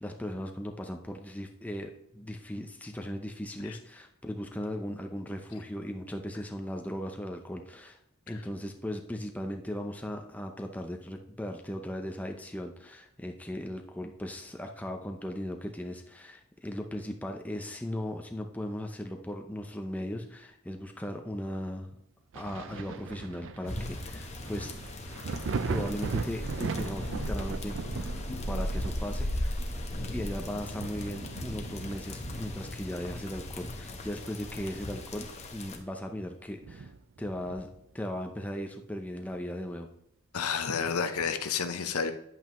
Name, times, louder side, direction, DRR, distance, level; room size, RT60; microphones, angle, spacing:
voice 1, 0.0-8.0 8.3-22.0 22.3-24.7 25.7-28.2 28.4-29.7 30.1-36.9 37.2-39.9, equal, 5° left, 3 dB, 0.6 m, -37 dB
Thunder, 22.3-33.7 34.1-35.6 35.9-36.0 36.6-37.9 39.3-39.4, right 4 dB, 55° right, 0.4 m, -39 dB
sound 1, 23.7-35.8, left 1 dB, 30° left, 1.0 m, -37 dB
voice 2, 40.3-42.1, left 6 dB, 80° left, 8 dB, 0.7 m, -30 dB
9.2 x 8.0 x 3.1 m, 0.78 s
head